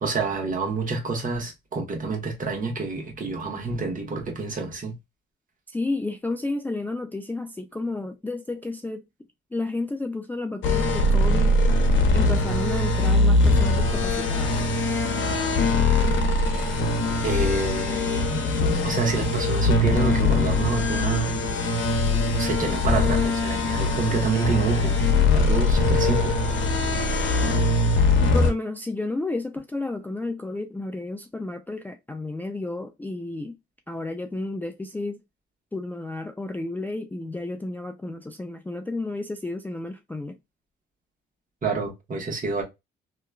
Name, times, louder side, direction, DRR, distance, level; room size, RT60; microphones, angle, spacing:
voice 1, 0.0-4.9 17.2-18.4 18.8-21.4 22.4-25.0 25.3-26.4 41.6-42.6, right 3 dB, 40° right, 1.2 m, -28 dB
voice 2, 5.7-9.0 9.5-11.6 12.1-14.5 28.2-33.5 33.9-35.2 35.7-40.4, left 2 dB, 10° left, 0.3 m, -31 dB
sound 1, 10.6-28.5, left 2 dB, 70° left, 0.8 m, -22 dB
2.9 x 2.2 x 2.2 m
cardioid pair, 90°, 20 cm